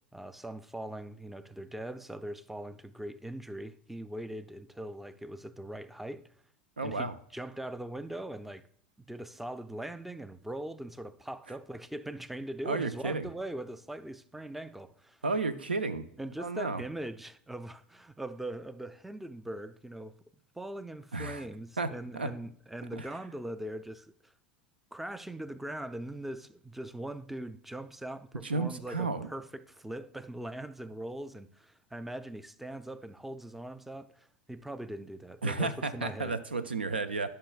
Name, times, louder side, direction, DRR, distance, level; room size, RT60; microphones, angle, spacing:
voice 1, 0.1-6.3 6.8-8.7 9.0-15.2 16.2-20.2 20.6-24.3 24.9-36.4, right 1 dB, 5° right, 0.4 m, -41 dB
voice 2, 6.8-7.1 12.7-13.3 15.2-16.1 16.4-16.8 21.1-21.4 21.8-21.9 22.1-22.3 22.9-23.1 28.4-29.3 35.4-37.3, right 3 dB, 85° right, 0.5 m, -32 dB
11.5 x 5.6 x 2.3 m
figure-of-eight pair, 85°, 5 cm